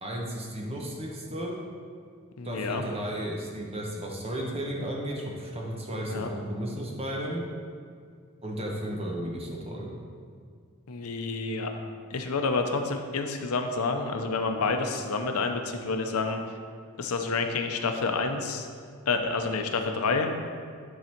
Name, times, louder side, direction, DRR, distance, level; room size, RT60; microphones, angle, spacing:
voice 1, 0.0-1.6 2.4-7.4 8.4-9.9, right 1 dB, 25° right, -2 dB, 1.1 m, -34 dB
voice 2, 2.4-2.8 6.1-6.3 10.9-11.7 12.1-16.4 17.0-18.7 19.1-20.3, left 4 dB, 85° left, 5 dB, 0.7 m, -28 dB
10.0 x 4.1 x 4.5 m, 2.1 s
head